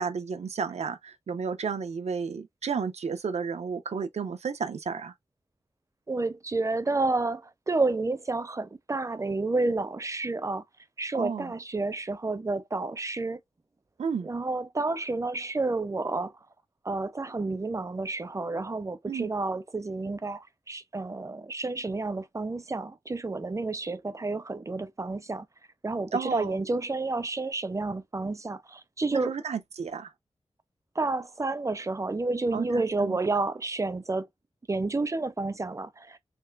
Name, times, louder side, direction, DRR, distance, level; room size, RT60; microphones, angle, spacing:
voice 1, 0.0-5.1 11.1-11.5 14.0-14.3 19.0-19.3 26.1-26.6 29.1-30.1 32.5-33.2, right 5 dB, 90° right, 0.6 m, -32 dB
voice 2, 6.1-10.6 11.0-13.4 14.2-16.3 16.8-25.5 25.8-29.3 31.0-34.3 34.7-36.2, right 3 dB, 30° right, 0.5 m, -30 dB
3.6 x 3.1 x 2.3 m
wide cardioid pair, 70°, 11 cm